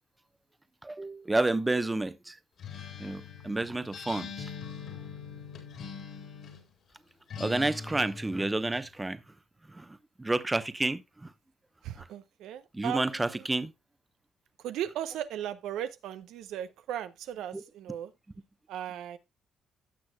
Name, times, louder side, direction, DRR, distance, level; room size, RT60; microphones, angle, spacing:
voice 1, 0.8-2.4 3.0-4.5 7.4-9.2 9.7-9.9 10.2-11.3 12.7-13.7 17.5-17.6, right 2 dB, 15° right, 0.8 m, -30 dB
Acoustic guitar, 2.6-6.7 7.3-8.9, left 5 dB, 65° left, 3.8 m, -42 dB
voice 2, 11.8-13.5 14.6-18.1 18.7-19.2, right 10 dB, 85° right, 0.7 m, -37 dB
16.0 x 6.2 x 2.2 m
cardioid pair, 90°, 0 cm